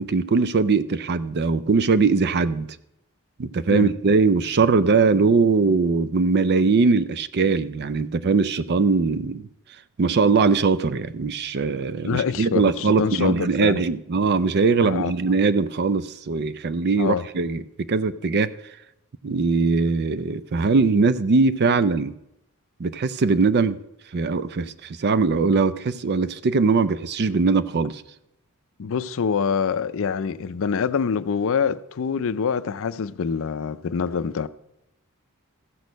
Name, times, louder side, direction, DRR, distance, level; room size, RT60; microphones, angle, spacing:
voice 1, 0.0-2.7 3.4-9.5 10.0-18.5 19.2-22.1 22.8-23.8 24.1-28.0, right 4 dB, 45° right, 0.4 m, -21 dB
voice 2, 12.0-13.8 14.8-15.1 17.0-17.2 28.8-34.5, left 6 dB, 60° left, 0.4 m, -25 dB
14.5 x 6.3 x 5.2 m
head